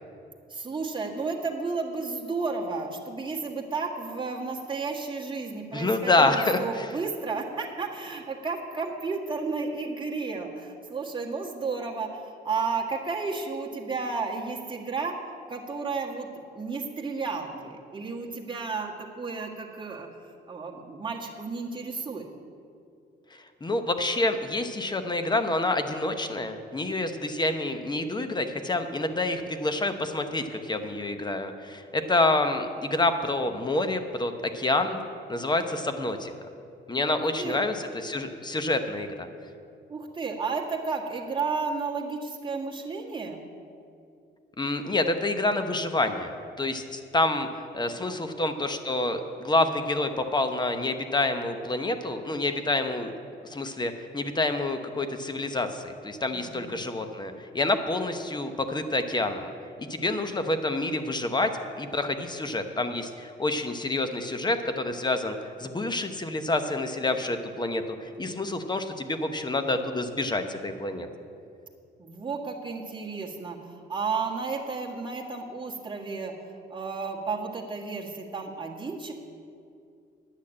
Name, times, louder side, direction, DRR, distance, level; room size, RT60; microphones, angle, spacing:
voice 1, 0.5-15.1 15.5-16.3 16.5-22.2 37.1-37.6 39.9-43.4 48.0-48.2 56.3-56.8 72.0-79.1, right 4 dB, 25° right, -1 dB, 1.6 m, -33 dB
voice 2, 5.7-6.9 23.6-35.0 35.3-36.3 36.9-39.3 44.6-46.3 46.6-47.5 47.7-53.1 53.4-59.5 59.8-71.1, left 2 dB, 20° left, 8 dB, 0.9 m, -28 dB
10.5 x 6.4 x 8.7 m, 2.5 s
cardioid pair, 90°, 20 cm